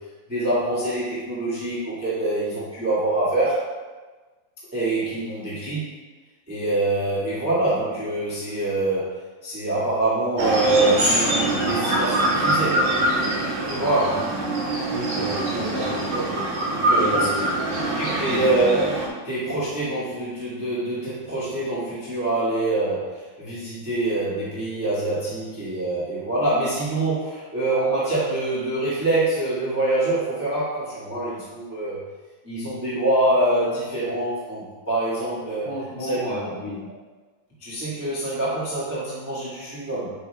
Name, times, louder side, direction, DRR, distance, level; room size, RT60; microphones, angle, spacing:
voice 1, 0.3-3.6 4.7-5.9 6.5-9.1 9.4-12.9 13.1-13.4 13.6-14.2 16.8-17.3 18.0-18.9 19.2-32.0 32.4-35.7 36.0-36.5 37.6-40.1, right 2 dB, 10° right, -10 dB, 0.9 m, -25 dB
sound 1, 10.4-19.1, right 1 dB, 60° right, 2.7 m, -24 dB
voice 2, 14.1-14.5 14.9-16.4 16.9-18.5 35.6-36.9, equal, 45° left, -9 dB, 2.8 m, -32 dB
8.8 x 5.4 x 2.4 m, 1.3 s
omnidirectional pair, 4.1 m